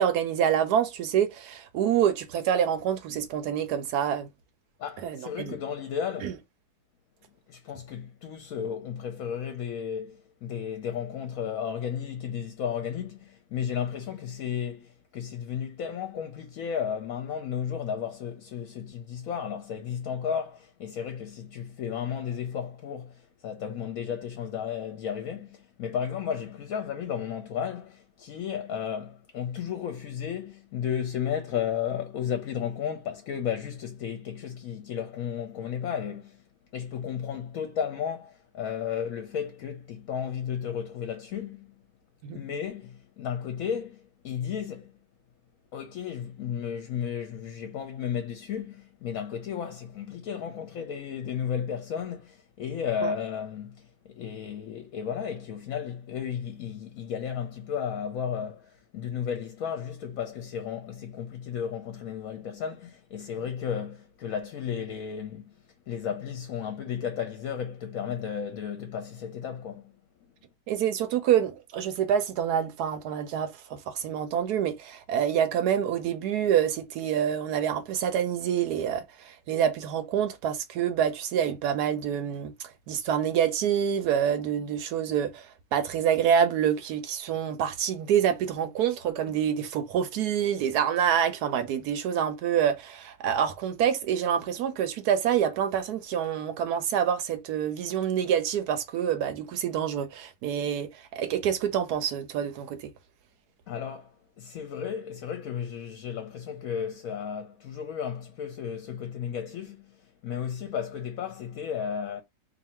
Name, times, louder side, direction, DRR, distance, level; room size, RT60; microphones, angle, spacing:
voice 1, 0.0-4.3 5.0-5.6 6.2-6.3 42.2-42.4 53.0-53.1 70.7-102.8, right 9 dB, 70° right, 1.1 m, -27 dB
voice 2, 4.8-6.4 7.5-36.4 36.7-41.7 42.3-44.9 45.7-65.5 65.9-70.0 103.7-112.2, left 8 dB, 65° left, 0.9 m, -34 dB
2.8 x 2.6 x 4.2 m
omnidirectional pair, 1.9 m